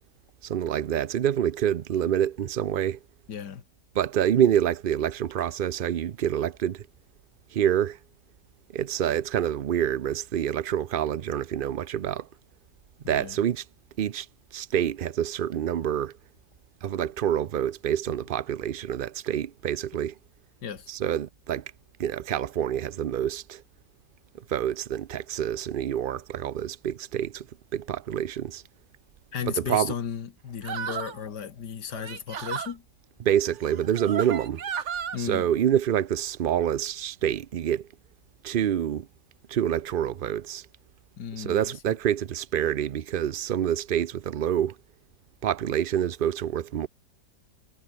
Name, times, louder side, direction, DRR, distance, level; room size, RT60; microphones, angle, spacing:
voice 1, 0.4-3.0 3.9-6.8 7.5-8.0 8.7-12.3 13.1-13.6 14.0-14.3 14.5-16.1 16.8-20.1 20.9-21.6 22.0-23.6 24.5-27.5 27.7-28.6 29.5-29.9 33.2-34.6 35.2-37.9 38.4-39.1 39.5-40.7 41.4-44.8 45.4-46.9, right 10 dB, 75° right, 0.4 m, -27 dB
voice 2, 3.3-3.6 13.0-13.4 20.6-20.9 29.3-32.8 35.1-35.5 41.2-41.7, left 7 dB, 90° left, 2.2 m, -34 dB
sound 1, 30.6-31.2 31.9-32.7 33.7-35.2, right 7 dB, 50° right, 1.4 m, -33 dB
omnidirectional pair, 1.7 m